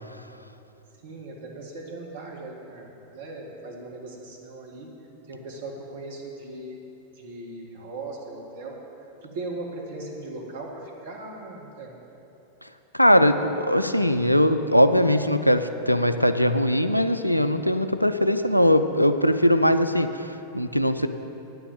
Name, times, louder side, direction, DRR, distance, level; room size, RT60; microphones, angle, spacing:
voice 1, 1.0-2.9 3.1-4.9 5.3-6.8 7.2-8.8 9.2-11.9, right 2 dB, 55° right, -1 dB, 1.9 m, -38 dB
voice 2, 12.9-21.1, equal, 90° left, 9 dB, 0.4 m, -20 dB
9.5 x 6.9 x 8.8 m, 2.9 s
figure-of-eight pair, 90°, 0 cm